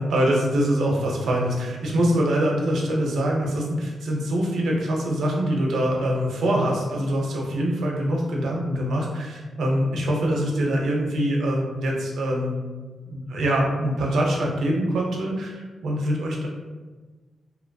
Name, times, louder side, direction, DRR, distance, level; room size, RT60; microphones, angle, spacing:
voice 1, 0.0-12.6 13.0-16.5, equal, 85° right, -1 dB, 0.6 m, -24 dB
2.9 x 2.2 x 2.6 m, 1.3 s
wide cardioid pair, 165°, 0 cm